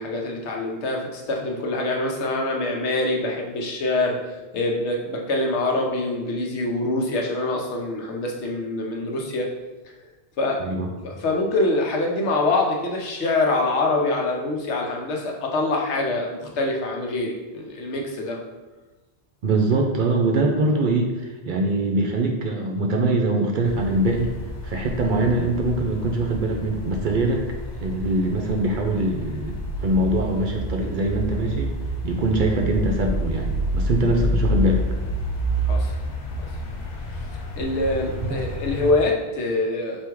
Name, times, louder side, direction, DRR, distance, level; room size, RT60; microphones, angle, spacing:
voice 1, 0.0-4.2 4.5-9.5 10.4-10.6 11.0-18.4 35.6-35.9 37.1-37.2 37.5-40.1, left 2 dB, 90° left, 0 dB, 1.0 m, -25 dB
voice 2, 19.4-24.3 24.6-27.4 27.8-31.7 32.0-34.8, right 2 dB, 60° right, 1 dB, 0.6 m, -23 dB
sound 1, 23.6-38.9, equal, 50° left, 0.6 m, -28 dB
3.4 x 2.7 x 4.5 m, 1.2 s
omnidirectional pair, 1.1 m